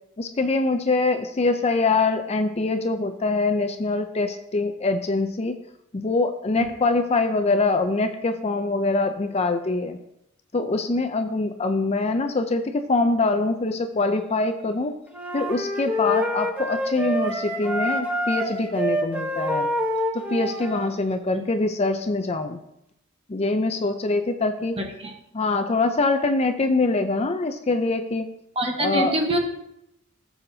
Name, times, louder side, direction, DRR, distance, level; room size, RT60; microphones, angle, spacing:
voice 1, 0.2-5.6 5.9-10.0 10.5-14.9 15.3-19.7 20.1-22.6 23.3-24.8 25.3-28.3 28.8-29.2, left 3 dB, 30° left, 7 dB, 0.5 m, -24 dB
sound 1, 15.1-20.9, equal, 10° right, 1.2 m, -27 dB
voice 2, 24.8-25.1 28.5-29.4, equal, 25° right, 3 dB, 1.3 m, -25 dB
15.5 x 7.1 x 2.8 m, 0.82 s
head